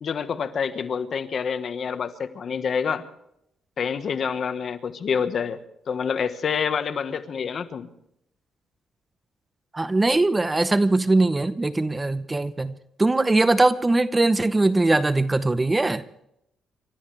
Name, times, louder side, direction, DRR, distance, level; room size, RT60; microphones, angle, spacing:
voice 1, 0.0-3.0 3.8-5.6 5.9-7.9, left 6 dB, 55° left, 10 dB, 1.4 m, -27 dB
voice 2, 9.7-12.7 13.0-16.0, right 2 dB, 20° right, 13 dB, 0.8 m, -21 dB
29.5 x 14.0 x 3.4 m, 0.77 s
cardioid pair, 90°, 0 cm